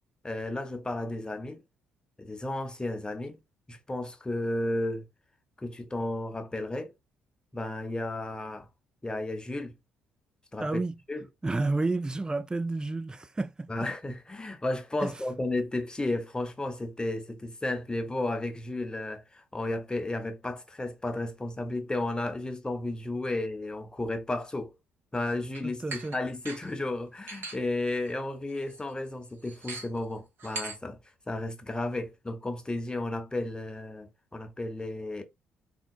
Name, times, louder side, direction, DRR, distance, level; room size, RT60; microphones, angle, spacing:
voice 1, 0.2-1.6 2.2-3.4 3.7-5.0 5.6-6.9 7.5-8.7 9.0-9.7 10.5-10.8 11.1-11.3 13.7-24.7 25.1-31.0 31.3-35.2, left 2 dB, 15° left, 0.7 m, -33 dB
voice 2, 10.6-11.0 11.4-13.7 15.0-15.1 25.6-26.2, right 3 dB, 15° right, 0.3 m, -30 dB
sound 1, 25.5-25.6 25.9-26.2 26.5-26.7 27.3-27.6 28.1-28.2 28.5-28.8 29.5-30.0 30.4-30.8, right 3 dB, 50° right, 1.0 m, -39 dB
3.7 x 2.1 x 2.3 m
figure-of-eight pair, 45°, 5 cm